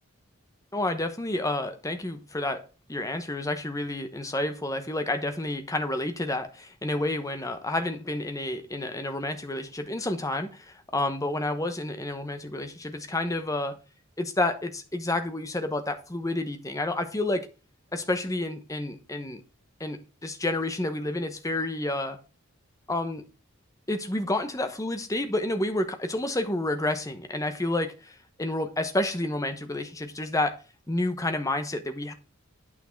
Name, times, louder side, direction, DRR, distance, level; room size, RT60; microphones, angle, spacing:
voice 1, 0.7-2.6 2.9-13.8 14.2-17.5 17.9-19.4 19.8-22.2 22.9-23.2 23.9-30.6 30.9-32.1, left 1 dB, 15° left, 1.0 m, -30 dB
9.0 x 6.0 x 4.5 m
head